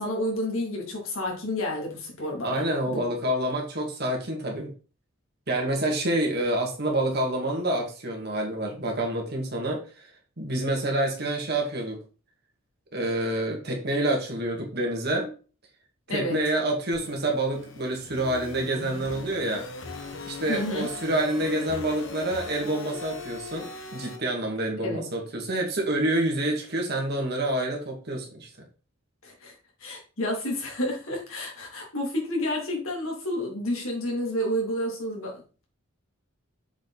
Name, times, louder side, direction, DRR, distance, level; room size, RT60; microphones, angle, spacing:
voice 1, 0.0-3.1 16.1-16.4 20.5-20.9 24.8-25.0 29.2-29.5 29.8-35.6, left 1 dB, 80° left, 0 dB, 3.1 m, -30 dB
voice 2, 2.4-4.7 5.5-10.1 10.4-12.0 12.9-15.3 16.1-19.6 20.3-28.5, right 1 dB, 50° right, 1 dB, 2.2 m, -27 dB
sound 1, 16.9-24.2, left 3 dB, 65° left, 1.5 m, -40 dB
7.1 x 5.2 x 4.1 m, 0.37 s
head